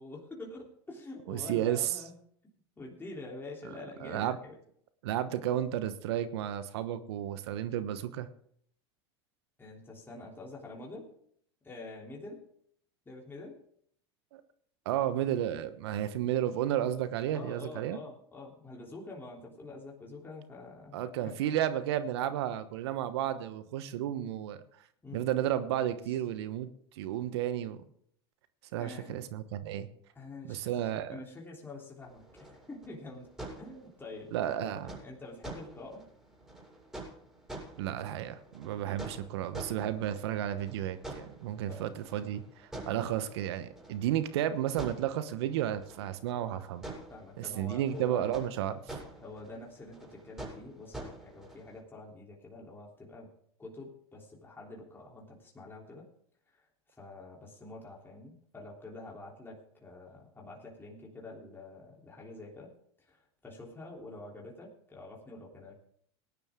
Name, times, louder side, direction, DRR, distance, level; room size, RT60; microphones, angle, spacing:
voice 1, 0.0-2.2 2.8-4.5 9.6-11.1 11.6-12.5 13.0-13.6 17.3-21.3 25.0-25.3 26.1-26.2 28.8-29.1 30.1-30.8 31.1-33.3 33.6-36.1 39.8-40.1 41.7-41.9 47.1-48.4 49.2-53.3 53.6-56.1 56.5-56.6 56.9-62.7 63.1-65.8, left 2 dB, 15° left, -2 dB, 3.4 m, -47 dB
voice 2, 1.3-2.0 4.0-4.4 5.0-8.3 14.3-14.4 14.8-18.0 20.9-24.6 25.1-27.8 28.7-29.9 30.5-31.2 34.3-34.9 37.8-46.8 47.4-49.0, right 11 dB, 70° right, 12 dB, 1.1 m, -32 dB
sound 1, 32.0-51.8, right 2 dB, 5° right, 6.9 m, -48 dB
18.0 x 10.5 x 3.7 m, 0.64 s
hypercardioid pair, 90°, 14 cm